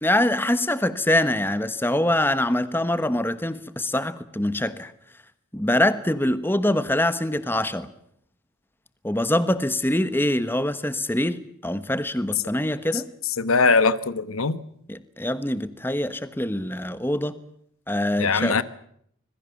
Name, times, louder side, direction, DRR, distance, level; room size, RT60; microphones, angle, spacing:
voice 1, 0.0-4.9 5.5-7.9 9.0-13.1 14.9-17.4 17.9-18.6, left 1 dB, 10° left, 13 dB, 1.2 m, -24 dB
voice 2, 13.4-14.6 18.2-18.6, left 4 dB, 85° left, 15 dB, 1.2 m, -21 dB
25.5 x 21.5 x 7.1 m, 0.68 s
head